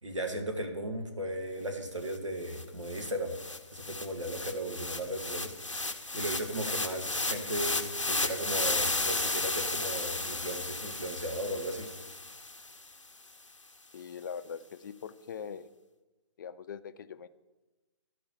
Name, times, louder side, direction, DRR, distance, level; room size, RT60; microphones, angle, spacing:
voice 1, 0.0-3.4 3.7-5.5 6.1-11.9, right 1 dB, 80° right, 4 dB, 1.8 m, -36 dB
sound 1, 2.1-2.2 2.5-12.8, left 2 dB, 90° left, 0.7 m, -34 dB
sound 2, 2.7-4.7 6.4-11.1 11.9-13.8, left 4 dB, 5° left, 1.0 m, -53 dB
voice 2, 13.9-15.7 16.4-17.3, left 7 dB, 40° left, 13 dB, 0.5 m, -42 dB
13.0 x 5.0 x 5.9 m, 1.1 s
figure-of-eight pair, 135°, 16 cm